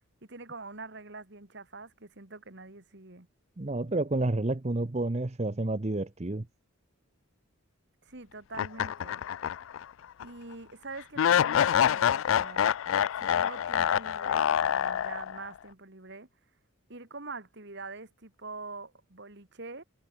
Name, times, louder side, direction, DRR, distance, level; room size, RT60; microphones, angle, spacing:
voice 1, 0.2-3.3 8.0-9.2 10.2-12.7 13.2-16.3 16.9-19.8, right 3 dB, 55° right, 2.4 m, -44 dB
voice 2, 3.6-6.5, right 2 dB, 30° right, 0.7 m, -30 dB
sound 1, 8.5-9.8 10.2-10.3 11.2-15.5, left 9 dB, 65° left, 0.3 m, -26 dB
head